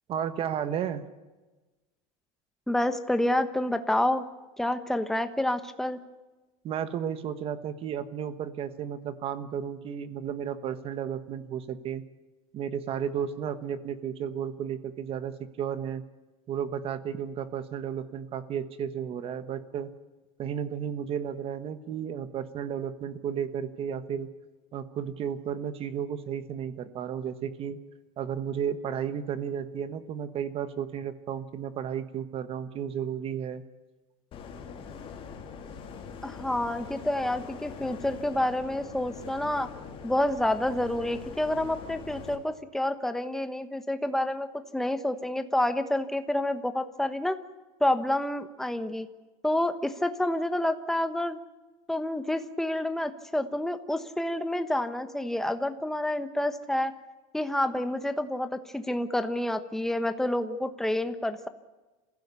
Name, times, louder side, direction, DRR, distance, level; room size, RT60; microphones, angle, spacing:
voice 1, 0.1-1.0 6.6-12.0 12.5-16.0 16.5-19.9 20.4-24.3 24.7-27.8 28.2-33.6, right 8 dB, 35° right, 12 dB, 1.2 m, -33 dB
voice 2, 2.7-4.2 4.6-6.0 36.2-39.7 40.0-47.4 47.8-49.1 49.4-51.4 51.9-56.9 57.3-61.5, left 1 dB, ahead, 9 dB, 1.2 m, -28 dB
sound 1, 34.3-42.4, left 6 dB, 30° left, 3.2 m, -43 dB
28.0 x 15.5 x 8.3 m, 1.2 s
cardioid pair, 160°, 18 cm